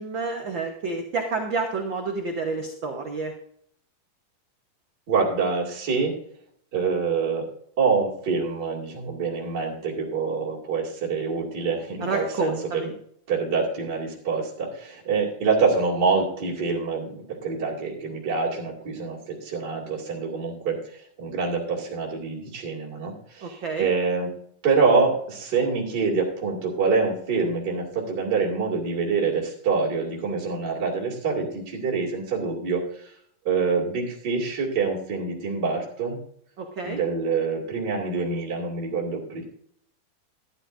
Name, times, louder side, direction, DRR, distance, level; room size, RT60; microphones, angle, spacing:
voice 1, 0.0-3.3 12.0-12.9 23.4-23.9 36.6-37.0, right 4 dB, 85° right, 2 dB, 1.0 m, -29 dB
voice 2, 5.1-6.2 6.7-7.5 7.8-12.9 13.3-24.3 24.6-33.1 33.4-36.2 36.8-39.4, right 4 dB, 35° right, -4 dB, 2.7 m, -26 dB
13.0 x 12.0 x 2.6 m, 0.65 s
omnidirectional pair, 4.1 m